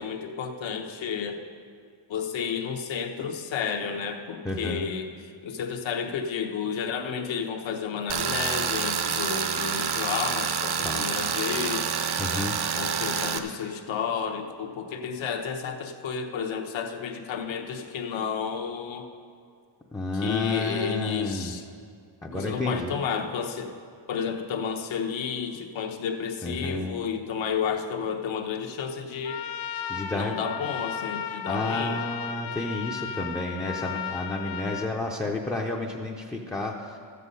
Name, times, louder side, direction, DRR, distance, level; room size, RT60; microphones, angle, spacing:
voice 1, 0.0-1.4 2.1-11.9 12.7-19.1 20.2-21.6 22.3-23.7 24.1-29.4 30.1-32.0, left 6 dB, 70° left, 4 dB, 1.1 m, -31 dB
voice 2, 4.4-4.9 10.8-11.1 12.2-12.6 19.9-21.5 22.2-22.9 26.4-26.9 29.9-30.4 31.5-37.0, left 2 dB, 5° left, -1 dB, 0.5 m, -31 dB
Tools, 8.1-13.4, right 6 dB, 55° right, 0.8 m, -28 dB
Trumpet, 29.2-34.9, left 8 dB, 50° left, 0.7 m, -35 dB
13.0 x 8.3 x 5.4 m, 2.2 s
wide cardioid pair, 155°, 47 cm